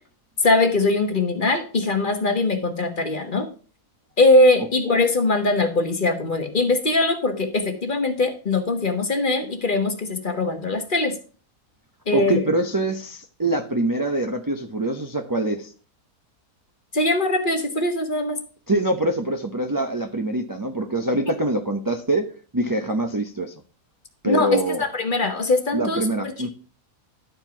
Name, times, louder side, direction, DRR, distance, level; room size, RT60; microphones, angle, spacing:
voice 1, 0.4-3.5 4.2-11.1 12.1-12.4 16.9-18.4 24.2-26.0, left 2 dB, 35° left, 6 dB, 1.4 m, -21 dB
voice 2, 12.1-15.7 18.7-22.3 22.5-23.5 24.2-24.8 25.7-26.5, right 1 dB, 20° right, 4 dB, 0.5 m, -24 dB
12.0 x 4.5 x 5.8 m, 0.39 s
omnidirectional pair, 1.6 m